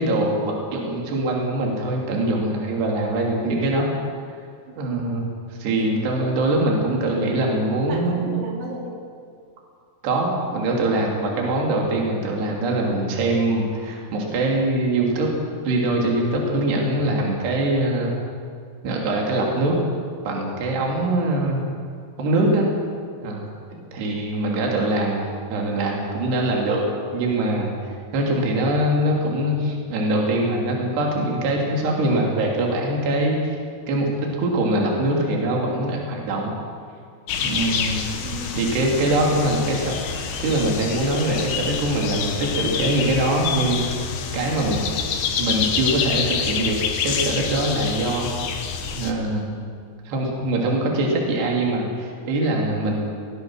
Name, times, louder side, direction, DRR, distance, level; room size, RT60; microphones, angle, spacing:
voice 1, 0.0-3.9 4.8-5.3 5.6-8.3 10.0-15.3 15.6-18.1 18.8-19.8 20.2-21.6 22.2-22.7 23.2-23.5 23.9-26.9 27.1-33.6 33.9-36.5 37.4-38.1 38.5-43.8 44.3-44.9 45.4-48.3 48.9-49.6 50.1-53.1, right 1 dB, 65° right, -1 dB, 4.8 m, -23 dB
voice 2, 4.7-5.0 7.9-9.1 22.3-22.5 23.7-23.8 38.2-38.8, right 2 dB, 90° right, -1 dB, 5.2 m, -36 dB
sound 1, 37.3-49.1, left 6 dB, 65° left, 2.8 m, -27 dB
22.0 x 19.0 x 6.3 m, 2.2 s
omnidirectional pair, 5.2 m